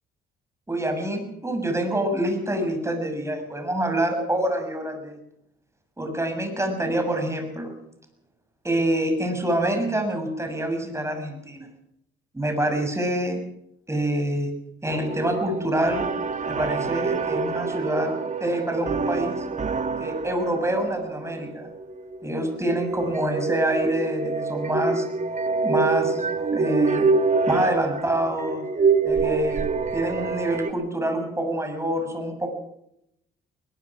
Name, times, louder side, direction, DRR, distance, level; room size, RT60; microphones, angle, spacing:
voice 1, 0.7-5.2 6.0-7.7 8.6-11.7 12.3-13.4 13.9-14.5 14.8-16.1 16.5-18.1 18.4-19.5 20.0-21.7 22.2-25.1 25.6-27.1 27.5-28.6 29.0-29.6 29.9-32.5, right 1 dB, 15° right, 5 dB, 6.8 m, -26 dB
sound 1, 14.9-30.7, right 4 dB, 35° right, 1.7 m, -26 dB
21.0 x 20.0 x 6.1 m, 0.78 s
cardioid pair, 90°, 20 cm